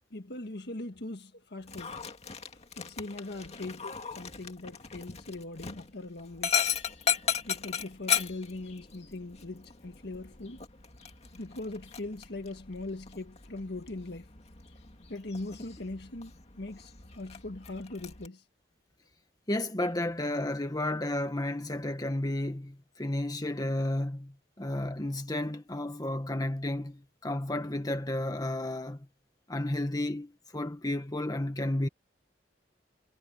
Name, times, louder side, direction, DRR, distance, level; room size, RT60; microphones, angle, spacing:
voice 1, 0.1-2.0 2.7-6.6 7.4-10.6 11.3-14.3 15.1-18.4, left 2 dB, 65° left, 1.6 m, -40 dB
Dog, 1.6-18.3, left 8 dB, 35° left, 2.2 m, -37 dB
voice 2, 19.5-29.1 29.5-31.9, left 1 dB, 20° left, 1.4 m, -32 dB
head